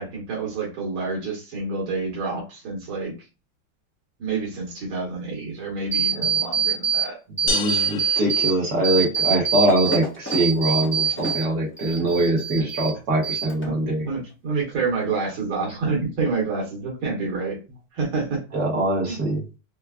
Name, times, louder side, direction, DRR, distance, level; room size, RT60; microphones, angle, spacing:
voice 1, 0.0-3.3 4.2-7.2 12.0-12.2 13.6-17.6 17.9-18.4 19.1-19.2, right 4 dB, 90° right, -2 dB, 2.1 m, -28 dB
sound 1, 5.9-7.1 7.4-8.5 8.8-11.5 11.8-12.9 13.2-13.8, right 7 dB, 10° left, 0.7 m, -24 dB
voice 2, 7.4-14.1 18.5-19.4, right 1 dB, 60° right, -3 dB, 1.6 m, -23 dB
sound 2, 7.5-9.3, left 6 dB, 85° left, 1.4 m, -32 dB
4.6 x 2.4 x 2.3 m, 0.30 s
omnidirectional pair, 2.2 m